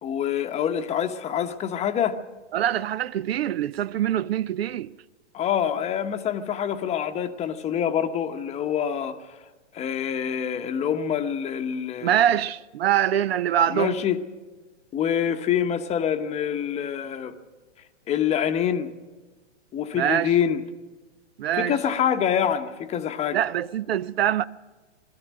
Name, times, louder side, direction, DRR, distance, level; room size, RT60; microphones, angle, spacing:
voice 1, 0.0-2.2 5.3-9.2 9.7-12.2 13.7-14.2 14.9-17.3 18.1-18.9 19.7-20.6 21.5-23.4, left 9 dB, 20° left, 1.0 m, -26 dB
voice 2, 2.5-4.9 12.0-14.0 19.9-20.3 21.4-21.7 23.3-24.4, right 11 dB, 55° right, 0.6 m, -24 dB
21.0 x 13.5 x 9.4 m
hypercardioid pair, 125°, 36 cm